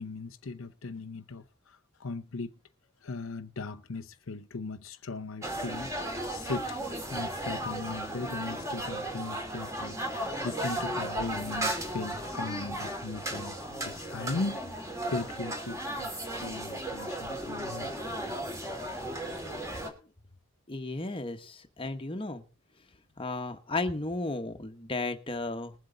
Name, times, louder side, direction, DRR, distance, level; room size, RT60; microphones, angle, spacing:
voice 1, 0.0-2.5 3.0-5.9 6.3-6.8 7.1-10.0 10.4-18.6, left 3 dB, 70° left, 0.7 m, -38 dB
sound 1, 5.4-19.9, right 1 dB, 15° right, 2.5 m, -35 dB
voice 2, 20.7-22.4 23.2-25.7, left 2 dB, 25° left, 1.3 m, -34 dB
21.0 x 7.7 x 3.9 m
head